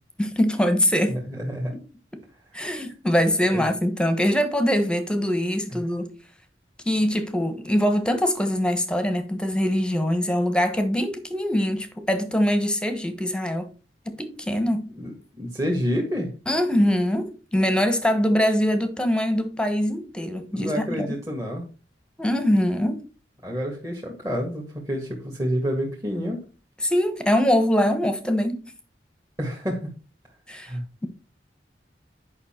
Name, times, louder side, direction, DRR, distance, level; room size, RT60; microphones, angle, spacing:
voice 1, 0.2-1.1 2.1-2.2 2.5-6.1 6.8-13.7 14.0-14.9 16.5-21.1 22.2-23.0 26.8-28.7 30.5-30.7, equal, 5° left, 1.2 m, -23 dB
voice 2, 1.1-1.7 3.5-3.7 5.7-5.8 15.0-16.3 20.5-21.6 23.4-26.4 29.4-29.9 30.6-30.8, equal, 20° right, 1.7 m, -28 dB
9.7 x 5.7 x 4.4 m
head